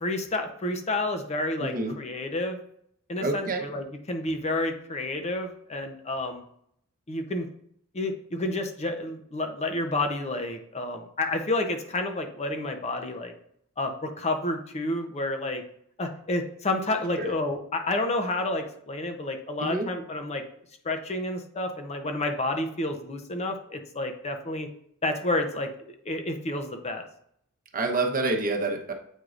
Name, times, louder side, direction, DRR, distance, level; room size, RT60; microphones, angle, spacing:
voice 1, 0.0-2.6 3.1-6.4 7.1-7.5 7.9-13.3 13.8-15.6 16.0-20.4 20.8-24.7 25.0-25.7 26.0-27.0, left 2 dB, 30° left, 5 dB, 0.7 m, -30 dB
voice 2, 1.6-2.0 3.2-3.6 17.2-17.3 19.6-19.9 27.7-28.9, right 2 dB, 40° right, 2 dB, 1.0 m, -27 dB
8.1 x 4.6 x 2.5 m, 0.69 s
head